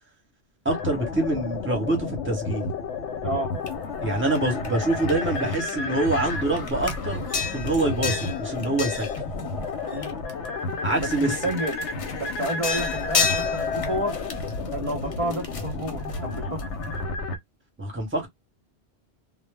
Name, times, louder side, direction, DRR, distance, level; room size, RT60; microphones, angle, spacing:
voice 1, 0.6-2.7 4.0-7.2 7.5-9.1 10.8-11.4 17.8-18.3, right 2 dB, 10° right, 0.8 m, -25 dB
sound 1, 0.7-17.4, left 3 dB, 85° left, 0.9 m, -32 dB
voice 2, 3.2-3.5 9.9-10.2 10.9-11.8 12.2-14.2 14.7-16.6, right 1 dB, 40° right, 0.6 m, -30 dB
sound 2, 3.7-5.7 6.0-10.5 10.9-16.8, left 5 dB, 45° left, 0.5 m, -32 dB
2.1 x 2.0 x 3.3 m
omnidirectional pair, 1.1 m